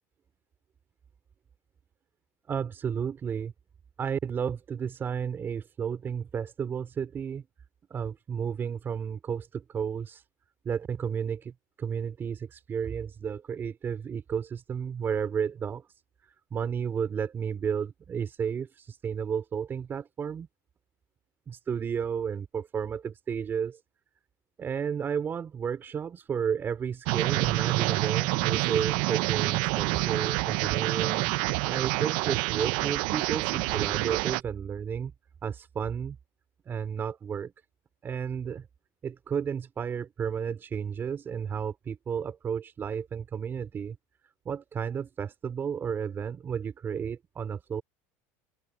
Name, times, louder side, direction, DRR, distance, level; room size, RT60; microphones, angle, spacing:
voice 1, 2.5-3.5 4.0-7.5 7.9-10.2 10.6-15.9 16.2-20.5 21.5-23.8 24.6-31.3 31.6-35.1 35.4-36.2 36.7-37.5 38.0-38.7 39.0-44.0 44.4-47.8, right 7 dB, 30° right, 4.6 m, -32 dB
sound 1, 27.1-34.4, right 24 dB, 70° right, 0.5 m, -27 dB
open air
supercardioid pair, 135°, 8 cm